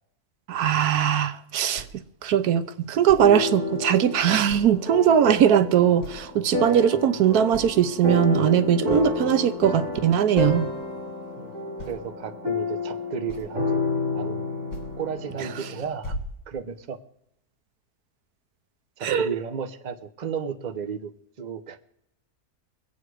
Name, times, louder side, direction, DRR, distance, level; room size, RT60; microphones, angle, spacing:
voice 1, 0.5-1.8 2.2-10.7 19.0-19.3, right 9 dB, 85° right, 1.3 m, -20 dB
sound 1, 1.8-2.0 3.1-3.3 4.5-4.8 5.3-5.4 6.0-6.3 6.7-7.2 7.5-7.8 8.5-8.6 8.9-9.1 9.9-10.0 10.3-10.6 11.8-12.0 13.3-13.7 14.7-14.9 15.3-15.6 16.0-16.9, equal, 50° left, 2.7 m, -38 dB
sound 2, 3.2-15.8, left 3 dB, 55° right, 3.9 m, -30 dB
voice 2, 11.9-13.8 14.1-14.4 15.0-16.2 16.5-17.0 19.0-21.1 21.4-21.8, right 7 dB, 35° right, 0.9 m, -33 dB
23.5 x 8.4 x 4.8 m
omnidirectional pair, 1.6 m